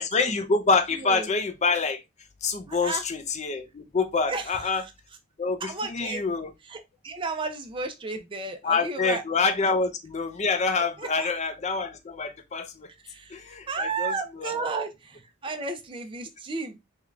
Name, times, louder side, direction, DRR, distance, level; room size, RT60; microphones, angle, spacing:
voice 1, 0.0-2.0 2.4-4.8 5.4-6.5 8.6-12.9 13.3-14.8, left 4 dB, 35° left, 0.5 m, -26 dB
voice 2, 2.7-3.0 4.3-4.4 5.6-6.2 6.7-9.2 9.6-9.7 11.0-11.3 13.0-16.8, right 4 dB, 25° right, 0.5 m, -33 dB
3.6 x 2.3 x 3.1 m
head